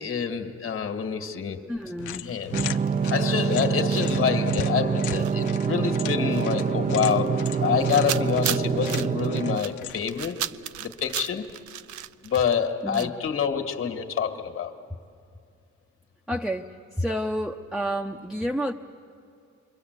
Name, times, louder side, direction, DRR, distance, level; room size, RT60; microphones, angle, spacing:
voice 1, 0.0-1.6 2.2-2.5 3.1-10.4 10.8-11.5 12.2-14.8, left 7 dB, 45° left, 6 dB, 1.9 m, -27 dB
voice 2, 1.7-2.3 12.8-13.1 16.3-18.7, equal, ahead, 2 dB, 0.8 m, -30 dB
sound 1, 1.8-3.6 3.9-13.1, right 12 dB, 75° right, 0.7 m, -37 dB
sound 2, 2.0-10.2, left 13 dB, 80° left, 0.7 m, -39 dB
sound 3, 2.5-9.6, right 6 dB, 25° right, 0.6 m, -26 dB
28.0 x 24.0 x 8.2 m, 2.4 s
cardioid pair, 90°, 30 cm